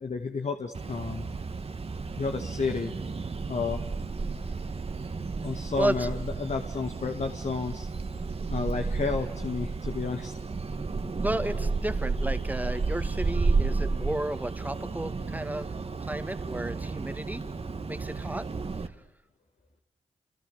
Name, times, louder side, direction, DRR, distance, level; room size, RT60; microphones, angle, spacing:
voice 1, 0.0-1.3 2.2-2.9 3.5-3.8 5.4-7.9 8.5-10.3, left 4 dB, 55° left, 5 dB, 2.1 m, -31 dB
sound 1, 0.7-18.9, right 4 dB, 45° right, 1.9 m, -32 dB
voice 2, 5.8-6.1 11.2-15.7 16.0-17.4 17.9-18.5, right 1 dB, 10° right, 9 dB, 2.3 m, -32 dB
28.5 x 28.0 x 7.2 m, 0.79 s
cardioid pair, 65°, 14 cm